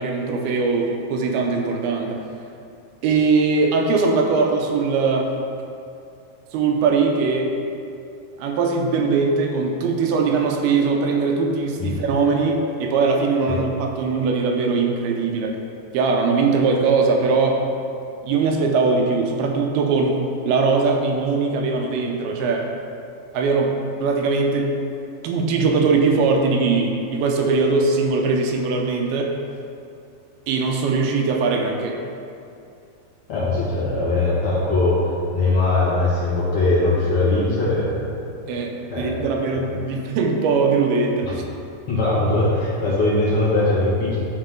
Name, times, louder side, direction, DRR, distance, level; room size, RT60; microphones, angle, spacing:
voice 1, 0.0-2.2 3.0-5.3 6.5-7.6 8.4-15.6 15.9-17.6 18.2-22.7 23.3-23.7 24.0-24.7 25.2-29.4 30.5-32.0 38.5-41.4, right 4 dB, 80° right, 2 dB, 2.6 m, -21 dB
voice 2, 33.3-35.0 35.3-38.1 38.9-39.3 39.6-39.7 41.2-41.3 41.9-44.2, left 2 dB, 50° left, -9 dB, 1.8 m, -20 dB
11.0 x 4.0 x 3.7 m, 2.5 s
omnidirectional pair, 4.5 m